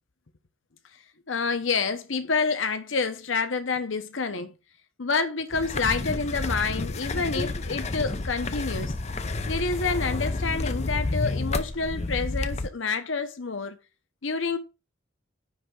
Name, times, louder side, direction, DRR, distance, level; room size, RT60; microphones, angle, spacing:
voice 1, 1.3-4.5 5.0-9.0 9.5-13.8 14.2-14.6, left 4 dB, 80° left, 0.9 m, -28 dB
sound 1, 5.5-12.7, left 2 dB, 35° left, 0.6 m, -30 dB
9.9 x 3.4 x 6.2 m
head